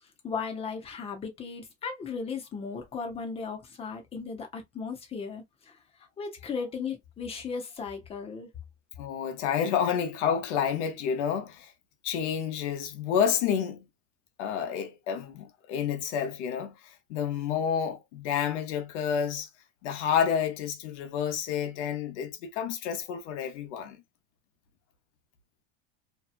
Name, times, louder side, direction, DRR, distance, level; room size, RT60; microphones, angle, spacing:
voice 1, 0.2-5.8 6.2-8.5, left 5 dB, 15° left, 0.7 m, -36 dB
voice 2, 9.0-11.7 12.0-13.9 14.4-19.5 19.8-24.0, left 8 dB, 85° left, 0.9 m, -29 dB
2.8 x 2.3 x 2.4 m
cardioid pair, 160°, 34 cm